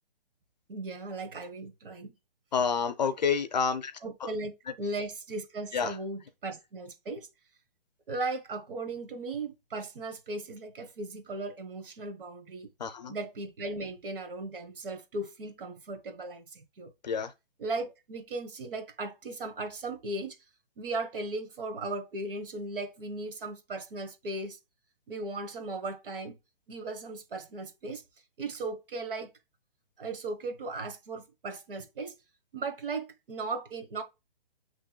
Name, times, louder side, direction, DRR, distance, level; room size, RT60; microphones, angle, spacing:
voice 1, 0.7-2.1 4.0-7.3 8.1-12.7 13.1-16.9 17.6-20.4 20.8-24.6 25.1-26.4 26.7-28.0 28.4-29.3 30.0-32.1 32.5-34.0, right 2 dB, 65° right, 1.3 m, -37 dB
voice 2, 2.5-3.9 4.2-4.3 4.7-4.8 5.7-5.9 12.8-13.1 17.0-17.3, left 6 dB, 45° left, 0.6 m, -29 dB
7.3 x 3.1 x 2.2 m
hypercardioid pair, 170°, 30 cm